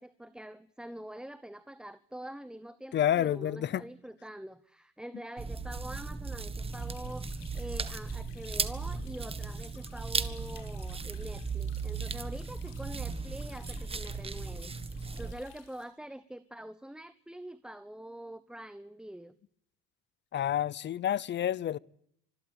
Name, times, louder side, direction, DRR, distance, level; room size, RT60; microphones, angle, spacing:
voice 1, 0.0-19.4, right 1 dB, 5° right, 1.0 m, -45 dB
voice 2, 2.9-3.8 20.3-21.8, left 11 dB, 40° left, 0.8 m, -29 dB
sound 1, 5.4-15.3, right 4 dB, 20° right, 1.6 m, -36 dB
sound 2, 6.7-15.9, left 10 dB, 85° left, 5.9 m, -58 dB
25.5 x 13.0 x 8.9 m
supercardioid pair, 105°, 29 cm